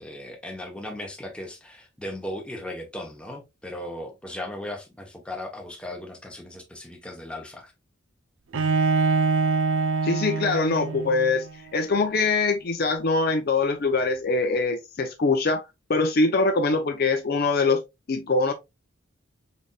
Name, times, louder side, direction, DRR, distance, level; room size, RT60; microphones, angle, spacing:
voice 1, 0.0-7.7, left 1 dB, 5° left, 0.8 m, -37 dB
Bowed string instrument, 8.5-11.5, right 4 dB, 75° right, 0.5 m, -24 dB
voice 2, 10.0-11.5 11.7-15.6 15.9-17.8 18.1-18.5, left 3 dB, 50° left, 0.5 m, -23 dB
3.9 x 3.3 x 2.3 m
head